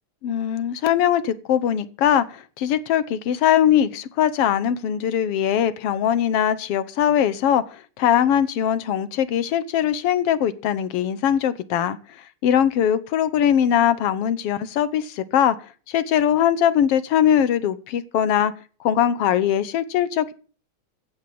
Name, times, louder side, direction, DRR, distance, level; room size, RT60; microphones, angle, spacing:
voice 1, 0.2-12.0 12.4-15.6 15.9-18.5 18.8-20.3, left 9 dB, 65° left, 15 dB, 1.6 m, -21 dB
16.0 x 6.3 x 8.5 m, 0.39 s
omnidirectional pair, 3.4 m